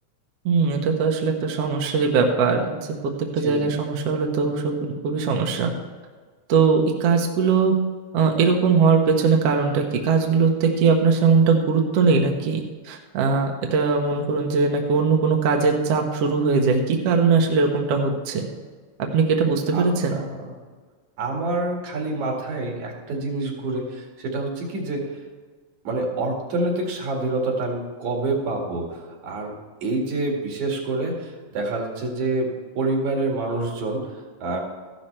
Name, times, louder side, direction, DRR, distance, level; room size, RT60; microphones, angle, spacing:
voice 1, 0.5-5.7 6.5-7.7 8.1-18.5 19.0-20.2, right 5 dB, 65° right, 2 dB, 1.9 m, -20 dB
voice 2, 3.4-3.8 19.7-19.8 20.1-20.4 21.2-25.1 25.8-29.5 29.8-34.6, right 2 dB, 85° right, 0 dB, 3.4 m, -27 dB
14.0 x 11.5 x 3.3 m, 1.5 s
omnidirectional pair, 3.3 m